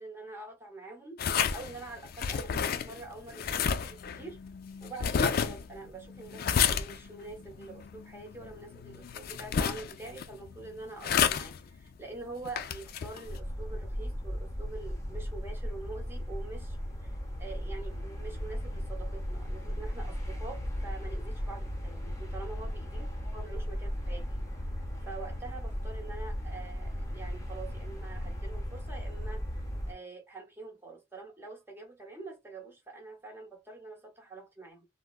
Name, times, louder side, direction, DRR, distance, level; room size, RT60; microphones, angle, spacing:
voice 1, 0.0-4.4 4.8-23.0 23.3-24.3 24.7-34.9, right 3 dB, 10° right, 0.9 m, -45 dB
sound 1, 1.2-13.4, left 7 dB, 50° left, 0.3 m, -32 dB
sound 2, 13.2-29.9, equal, 15° left, 0.7 m, -36 dB
3.4 x 2.0 x 2.3 m
head